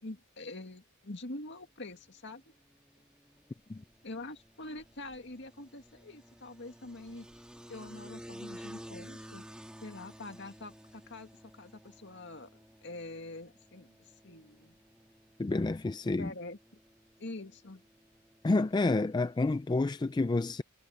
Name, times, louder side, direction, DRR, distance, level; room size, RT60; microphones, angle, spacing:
voice 1, 0.0-2.5 4.0-7.3 7.7-9.4 9.8-14.8 16.2-16.6 17.2-17.8, left 2 dB, 60° left, 2.2 m, -45 dB
sound 1, 1.5-19.6, equal, 5° right, 2.0 m, -53 dB
voice 2, 15.4-16.3 18.4-20.6, left 2 dB, 20° left, 0.3 m, -29 dB
head